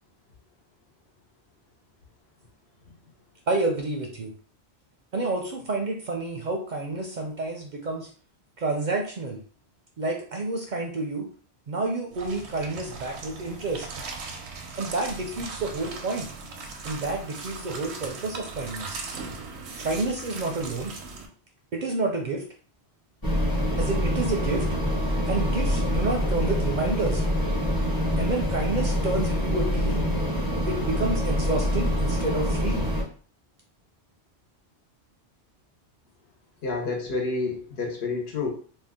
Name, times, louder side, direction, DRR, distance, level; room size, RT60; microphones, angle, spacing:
voice 1, 3.5-4.3 5.1-8.1 8.6-9.4 10.0-11.3 11.7-13.9 14.8-16.3 16.8-19.0 19.8-20.9 21.7-22.4 23.8-24.6 25.3-27.2 28.2-30.0 30.7-32.9, right 2 dB, 55° right, 1 dB, 0.5 m, -29 dB
sound 1, 12.1-21.3, right 4 dB, 90° right, 0.9 m, -39 dB
sound 2, 23.2-33.0, equal, 20° left, 0.8 m, -25 dB
voice 2, 36.6-38.5, left 3 dB, 70° left, 1 dB, 1.0 m, -29 dB
2.7 x 2.2 x 3.5 m, 0.42 s
omnidirectional pair, 1.1 m